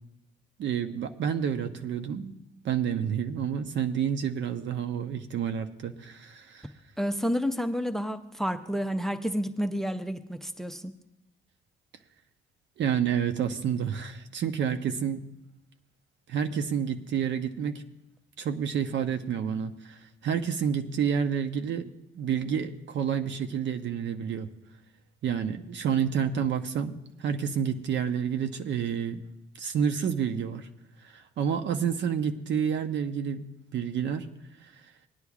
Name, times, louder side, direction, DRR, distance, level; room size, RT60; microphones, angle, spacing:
voice 1, 0.6-2.3 2.6-6.7 12.8-15.2 16.3-17.8 18.4-21.9 22.2-24.5 25.2-29.2 29.6-30.7 31.0-34.3, right 8 dB, 70° right, 7 dB, 0.8 m, -29 dB
voice 2, 7.0-10.9, equal, ahead, 8 dB, 0.6 m, -30 dB
20.0 x 9.7 x 2.4 m, 0.87 s
cardioid pair, 90°, 20 cm